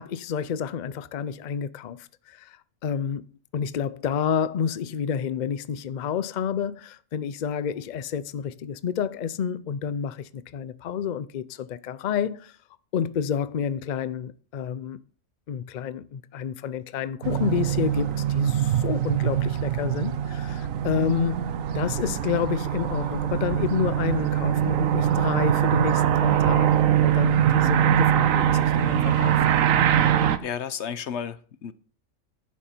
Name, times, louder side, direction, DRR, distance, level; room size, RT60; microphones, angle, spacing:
voice 1, 0.0-3.3 3.5-12.6 12.9-15.0 15.5-29.5, left 7 dB, 85° left, 0.4 m, -29 dB
sound 1, 17.2-30.4, right 10 dB, 70° right, 1.1 m, -23 dB
voice 2, 30.4-31.7, left 7 dB, 55° left, 1.0 m, -32 dB
11.0 x 8.5 x 4.4 m
omnidirectional pair, 1.5 m